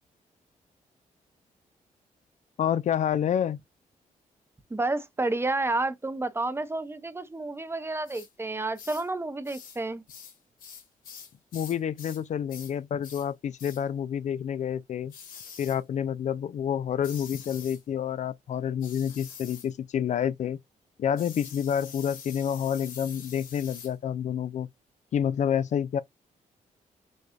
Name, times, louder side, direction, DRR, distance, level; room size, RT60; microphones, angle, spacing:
voice 1, 2.6-3.6 11.5-15.1 15.6-20.6 21.0-24.7 25.1-26.0, left 9 dB, 60° left, 0.4 m, -28 dB
voice 2, 4.7-10.0, right 2 dB, 15° right, 0.7 m, -30 dB
sound 1, 8.1-8.3 8.7-9.1 9.4-9.8 10.1-12.2 12.5-12.7 13.0-13.3 13.6-13.8 15.1-15.8 17.0-17.8 18.8-19.7 21.2-23.9, left 7 dB, 90° left, 1.6 m, -45 dB
6.3 x 2.3 x 2.6 m
cardioid pair, 90°, 14 cm